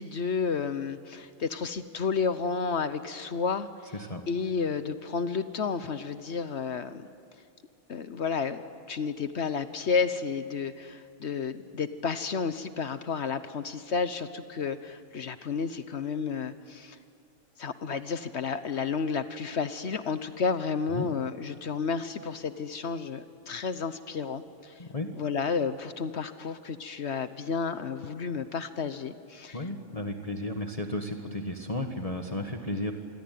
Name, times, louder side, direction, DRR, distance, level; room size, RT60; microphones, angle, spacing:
voice 1, 0.0-3.9 4.3-7.1 7.9-17.0 17.6-24.8 25.1-29.6, left 5 dB, 60° left, 11 dB, 1.2 m, -31 dB
voice 2, 3.9-4.2 20.9-21.1 24.8-25.1 29.5-32.9, left 1 dB, 30° left, 4 dB, 1.7 m, -33 dB
27.5 x 22.0 x 9.4 m, 2.3 s
omnidirectional pair, 1.3 m